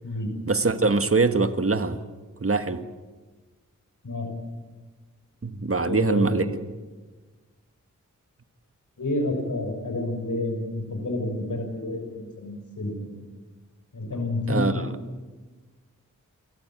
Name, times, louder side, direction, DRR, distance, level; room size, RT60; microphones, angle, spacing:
voice 1, 0.5-2.0 2.4-2.8 5.4-6.5 14.5-14.7, right 3 dB, 45° right, 10 dB, 1.6 m, -23 dB
voice 2, 5.8-6.5 9.0-13.1 13.9-14.8, left 2 dB, 70° left, 4 dB, 6.4 m, -29 dB
28.5 x 14.0 x 8.9 m, 1.3 s
cardioid pair, 50°, 32 cm